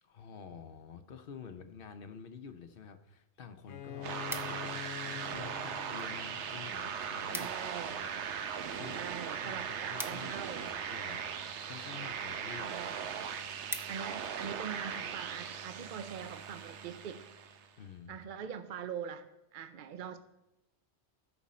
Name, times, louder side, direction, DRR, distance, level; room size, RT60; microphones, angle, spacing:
voice 1, 0.0-7.5 7.9-8.1 8.4-9.2 9.4-11.2 11.7-12.8 17.8-18.2, left 6 dB, 60° left, 9 dB, 0.8 m, -49 dB
sound 1, 3.1-3.2 3.5-4.9 5.6-6.1 6.4-6.5 6.8-6.9 7.1-7.7 8.1-10.9 11.7-12.0 12.5-12.6 12.9-13.0 13.3-14.3 14.8-15.0, equal, 5° right, 0.5 m, -44 dB
Bowed string instrument, 3.7-7.3, left 11 dB, 90° left, 0.9 m, -46 dB
sound 2, 4.0-17.7, right 7 dB, 90° right, 1.0 m, -39 dB
voice 2, 7.3-8.0 8.9-10.7 12.6-13.0 13.9-17.2 18.1-19.3 19.5-20.2, right 8 dB, 55° right, 10 dB, 0.6 m, -43 dB
12.5 x 6.2 x 4.2 m, 0.92 s
omnidirectional pair, 1.1 m